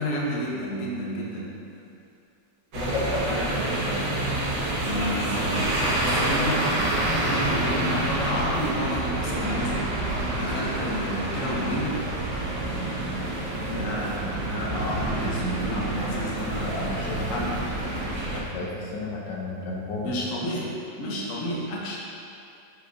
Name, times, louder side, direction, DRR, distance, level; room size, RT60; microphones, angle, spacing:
voice 1, 0.0-1.5 4.8-5.7 6.0-9.8 10.4-11.9 13.7-16.8 17.1-17.5 20.0-20.7 21.0-22.0, equal, 50° left, -4 dB, 1.2 m, -31 dB
voice 2, 2.7-4.3 13.3-14.3 16.3-16.4 16.6-17.4 18.3-20.2, left 2 dB, 75° left, -3 dB, 1.4 m, -33 dB
sound 1, 2.7-18.4, right 1 dB, 75° right, 1.7 m, -27 dB
8.9 x 4.3 x 2.7 m, 2.6 s
omnidirectional pair, 1.9 m